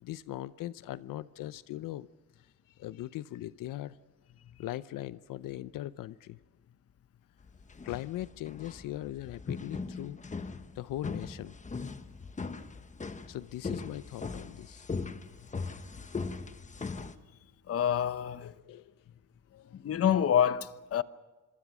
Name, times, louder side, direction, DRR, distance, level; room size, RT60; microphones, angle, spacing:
voice 1, 0.0-2.1 2.8-4.0 4.6-6.4 7.8-10.2 10.8-11.5 13.3-14.9 18.4-18.9, left 14 dB, 85° left, 0.7 m, -40 dB
sound 1, 7.5-17.1, left 4 dB, 25° left, 1.1 m, -40 dB
voice 2, 17.7-18.5 19.5-21.0, left 9 dB, 45° left, 0.9 m, -27 dB
26.0 x 23.5 x 6.1 m
cardioid pair, 125°, 32 cm